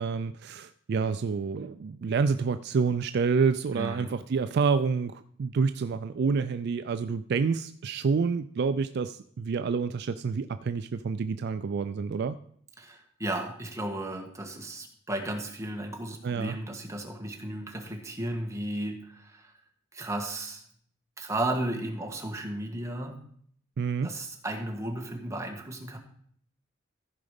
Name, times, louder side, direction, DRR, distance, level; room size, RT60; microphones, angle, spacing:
voice 1, 0.0-12.4 16.2-16.6 23.8-24.1, right 5 dB, 55° right, 12 dB, 0.4 m, -28 dB
voice 2, 3.7-4.1 12.8-19.5 19.9-20.7 21.2-23.3 24.0-26.0, right 1 dB, 15° right, 2 dB, 1.6 m, -34 dB
14.5 x 4.9 x 5.2 m, 0.62 s
head